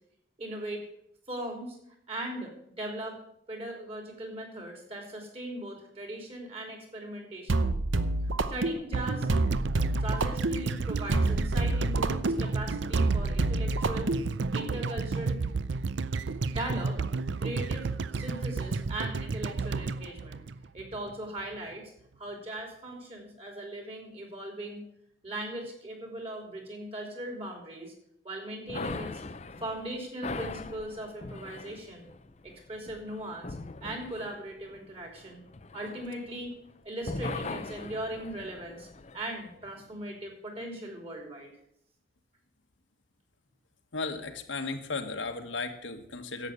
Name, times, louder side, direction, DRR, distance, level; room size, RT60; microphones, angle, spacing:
voice 1, 0.4-0.9 1.3-1.8 2.1-3.2 3.5-7.7 8.5-9.3 10.0-14.1 14.5-15.4 16.5-17.0 17.4-20.4 20.7-21.9 22.2-24.8 25.2-27.9 28.2-29.2 29.6-32.1 32.4-33.6 33.8-35.4 35.7-36.5 36.8-38.9 39.1-41.5, right 1 dB, 30° right, 2 dB, 3.3 m, -39 dB
sound 1, 7.5-14.7, right 2 dB, 85° right, 0.8 m, -28 dB
sound 2, 8.9-21.1 21.4-21.5, right 4 dB, 70° right, 0.5 m, -32 dB
sound 3, 28.7-36.7 37.0-39.4, left 3 dB, 35° left, 0.5 m, -40 dB
voice 2, 43.9-46.5, left 3 dB, 85° left, 5 dB, 1.5 m, -35 dB
11.5 x 8.3 x 8.1 m, 0.76 s
head